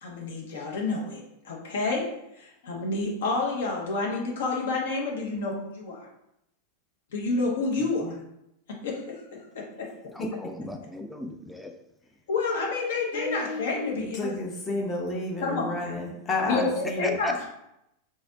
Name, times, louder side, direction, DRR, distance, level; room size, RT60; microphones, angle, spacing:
voice 1, 0.0-2.1 2.4-6.1 7.1-8.1 8.8-9.2 9.8-9.9 12.3-14.3 15.4-16.0 16.5-17.5, left 3 dB, 60° left, -1 dB, 0.9 m, -29 dB
voice 2, 10.1-11.7 17.0-17.5, left 2 dB, 5° left, 4 dB, 0.4 m, -35 dB
voice 3, 13.1-17.2, left 2 dB, 25° left, -1 dB, 0.9 m, -31 dB
3.1 x 2.7 x 3.7 m, 0.83 s
figure-of-eight pair, 90°, 0 cm